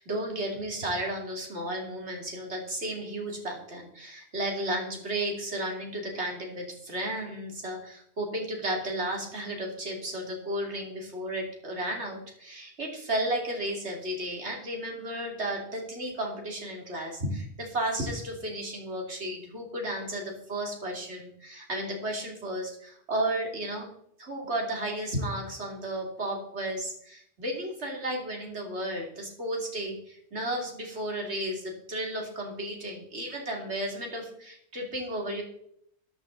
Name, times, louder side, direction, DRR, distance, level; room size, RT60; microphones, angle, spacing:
voice 1, 0.0-23.9 24.2-35.4, right 1 dB, 80° right, 1 dB, 3.1 m, -33 dB
13.5 x 9.4 x 3.9 m, 0.69 s
omnidirectional pair, 1.1 m